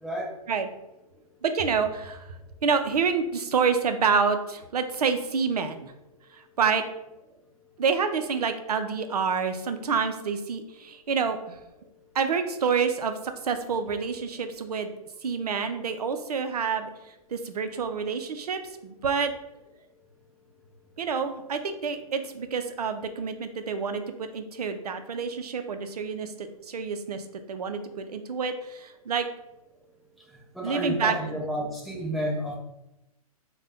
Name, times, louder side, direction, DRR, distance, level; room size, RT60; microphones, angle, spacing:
voice 1, 1.4-2.3 2.6-5.9 6.3-6.8 7.8-11.6 12.1-14.9 15.2-19.3 21.0-29.3 30.6-31.4, right 5 dB, 90° right, 8 dB, 0.4 m, -28 dB
voice 2, 30.5-32.6, equal, ahead, -3 dB, 0.4 m, -30 dB
2.6 x 2.1 x 3.4 m, 0.90 s
hypercardioid pair, 130°, 19 cm